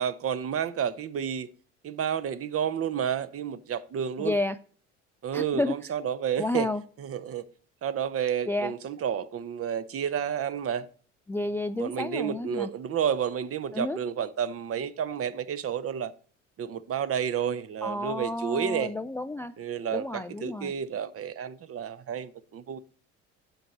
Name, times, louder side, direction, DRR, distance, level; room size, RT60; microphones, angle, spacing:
voice 1, 0.0-1.5 1.8-4.4 5.2-6.7 7.0-7.4 7.8-10.9 11.8-16.1 16.6-18.9 19.6-22.8, right 8 dB, 40° right, 0.8 m, -30 dB
voice 2, 4.2-4.6 5.3-5.7 6.4-6.8 8.5-8.7 11.3-12.7 13.7-14.0 17.8-19.5 19.9-20.7, left 2 dB, 5° left, 0.3 m, -30 dB
9.3 x 6.5 x 4.1 m
hypercardioid pair, 65°, 35 cm